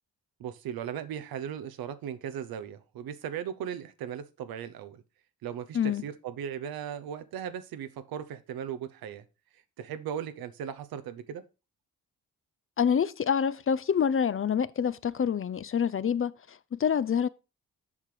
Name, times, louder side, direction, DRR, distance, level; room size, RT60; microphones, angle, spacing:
voice 1, 0.4-5.0 5.4-9.2 9.5-11.4, right 9 dB, 85° right, 0.9 m, -37 dB
voice 2, 12.8-17.3, left 7 dB, 40° left, 0.6 m, -27 dB
7.4 x 6.0 x 4.9 m
cardioid pair, 60°, 35 cm